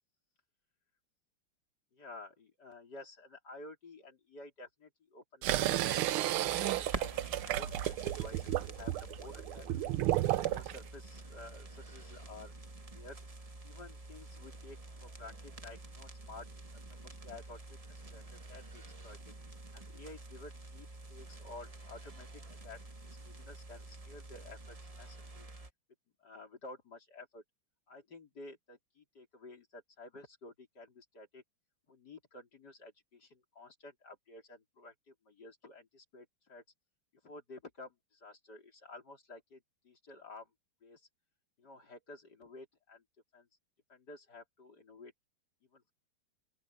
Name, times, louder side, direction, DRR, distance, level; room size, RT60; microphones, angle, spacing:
voice 1, 1.9-9.7 10.2-12.5 12.9-13.2 13.6-17.6 17.9-19.2 19.7-25.5 26.2-27.4 27.9-31.4 31.9-36.6 37.2-40.5 40.8-41.1 41.6-43.0 43.3-43.5 43.9-45.1 45.7-45.9, left 2 dB, 50° left, 4.1 m, -52 dB
sound 1, 5.4-10.8, right 14 dB, 90° right, 1.6 m, -32 dB
sound 2, 6.4-25.7, right 2 dB, 20° right, 1.0 m, -48 dB
open air
omnidirectional pair, 2.3 m